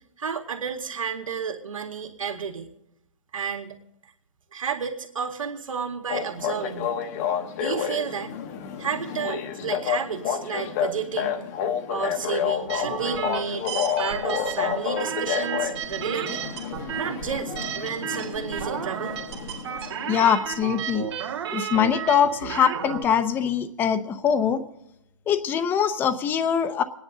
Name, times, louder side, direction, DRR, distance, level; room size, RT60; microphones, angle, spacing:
voice 1, 0.2-2.7 3.3-3.8 4.5-6.9 7.6-8.3 8.8-11.4 11.9-13.7 14.0-16.4 17.0-19.2, right 6 dB, 85° right, 3 dB, 2.2 m, -31 dB
sound 1, 6.1-20.4, left 8 dB, 30° left, 1.0 m, -30 dB
sound 2, 12.7-23.0, right 8 dB, 55° right, 1.9 m, -33 dB
voice 2, 20.1-21.1 21.5-24.6 25.3-26.8, left 8 dB, 10° left, 12 dB, 0.6 m, -23 dB
27.5 x 10.0 x 3.8 m, 0.86 s
hypercardioid pair, 155°, 17 cm